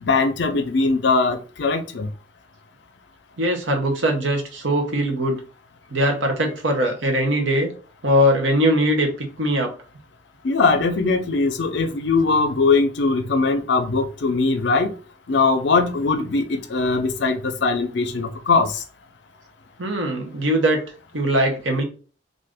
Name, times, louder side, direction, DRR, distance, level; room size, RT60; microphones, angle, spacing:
voice 1, 0.0-2.1 10.4-14.9 15.3-18.7, left 3 dB, 65° left, 0.5 m, -20 dB
voice 2, 3.4-5.4 5.9-7.7 8.0-9.7 19.8-20.8 21.1-21.8, equal, 80° right, 0.8 m, -21 dB
2.5 x 2.5 x 3.4 m
head